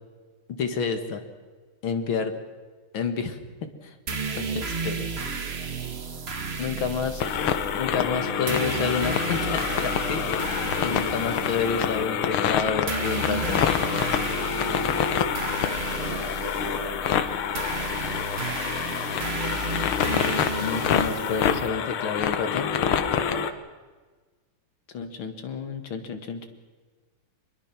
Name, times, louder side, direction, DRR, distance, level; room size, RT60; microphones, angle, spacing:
voice 1, 0.5-1.2 1.8-2.3 2.9-3.4 3.8-3.9 4.4-5.1 6.6-7.2 7.7-10.6 10.8-13.6 20.6-22.7 24.9-26.5, left 5 dB, 70° left, 7 dB, 2.6 m, -29 dB
sound 1, 4.1-21.7, right 4 dB, 30° right, 1.5 m, -33 dB
sound 2, 7.2-23.5, left 8 dB, 85° left, 1.9 m, -27 dB
voice 2, 16.0-17.7 23.1-23.5, right 2 dB, 80° right, 0 dB, 4.2 m, -39 dB
24.5 x 21.5 x 6.1 m, 1.4 s
omnidirectional pair, 2.3 m